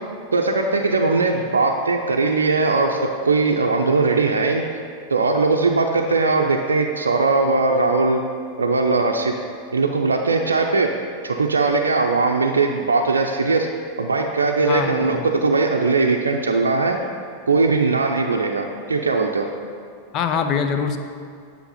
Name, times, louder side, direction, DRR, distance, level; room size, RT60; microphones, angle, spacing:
voice 1, 0.3-4.6 5.1-8.2 8.6-9.3 9.7-10.9 11.2-13.7 14.0-17.0 17.5-19.5, right 3 dB, 75° right, 1 dB, 0.6 m, -19 dB
voice 2, 14.6-15.2 20.1-21.0, left 6 dB, 35° left, 7 dB, 0.7 m, -23 dB
10.5 x 5.8 x 5.7 m, 2.3 s
figure-of-eight pair, 90°, 0 cm